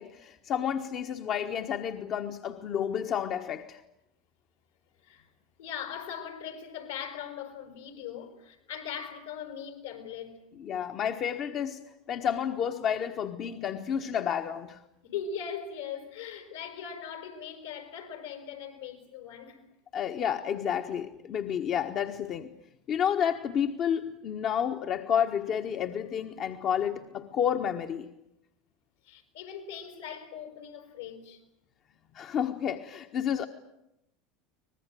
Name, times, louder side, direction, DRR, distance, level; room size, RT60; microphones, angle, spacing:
voice 1, 0.0-3.8 10.5-14.8 19.9-22.5 22.9-28.1 32.1-33.4, left 8 dB, 45° left, 1.4 m, -30 dB
voice 2, 5.6-10.4 15.0-19.6 29.0-31.4, left 7 dB, 80° left, 5.1 m, -40 dB
24.5 x 20.0 x 9.1 m
hypercardioid pair, 85°, 0 cm